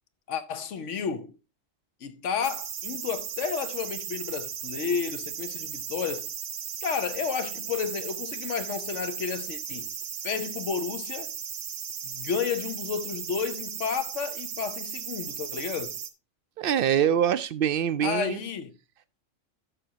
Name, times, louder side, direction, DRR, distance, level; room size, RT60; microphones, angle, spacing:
voice 1, 0.3-1.3 2.0-6.3 6.8-9.9 10.2-11.3 12.0-16.0 18.0-18.7, left 6 dB, 70° left, 1.2 m, -31 dB
sound 1, 2.4-16.1, right 8 dB, 80° right, 1.2 m, -36 dB
voice 2, 16.6-18.4, right 9 dB, 60° right, 0.6 m, -24 dB
12.0 x 6.5 x 2.9 m
omnidirectional pair, 1.3 m